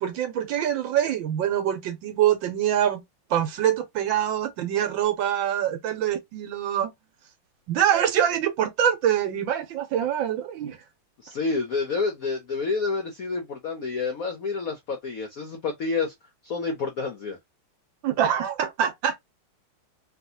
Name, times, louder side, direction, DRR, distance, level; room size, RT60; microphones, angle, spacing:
voice 1, 0.0-3.0 3.3-6.9 7.7-10.8 18.0-19.2, right 10 dB, 70° right, 1.3 m, -24 dB
voice 2, 11.2-16.1 16.4-17.4, left 4 dB, 75° left, 0.8 m, -29 dB
3.4 x 2.4 x 2.7 m
omnidirectional pair, 2.4 m